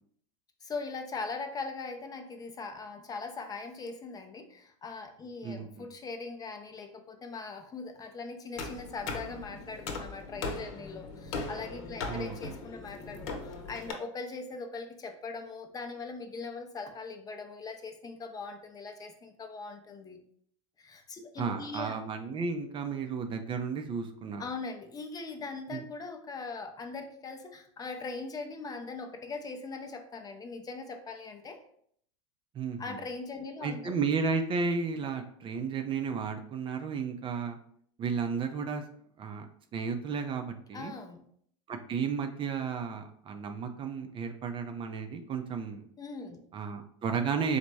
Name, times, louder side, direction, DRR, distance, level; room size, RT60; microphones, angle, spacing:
voice 1, 0.6-20.2 20.8-22.0 24.4-31.6 32.8-34.0 40.7-41.2 46.0-46.4, left 4 dB, 25° left, 5 dB, 0.6 m, -41 dB
voice 2, 5.4-5.9 12.1-12.6 21.4-24.4 25.7-25.8 32.5-33.0 33.6-37.6 38.0-38.8 39.2-39.5 39.7-40.9 41.7-45.8 46.5-47.6, right 5 dB, 30° right, 6 dB, 0.5 m, -33 dB
sound 1, 8.6-13.9, left 3 dB, 65° left, 0.9 m, -39 dB
4.1 x 2.2 x 4.6 m, 0.64 s
hypercardioid pair, 110°, 16 cm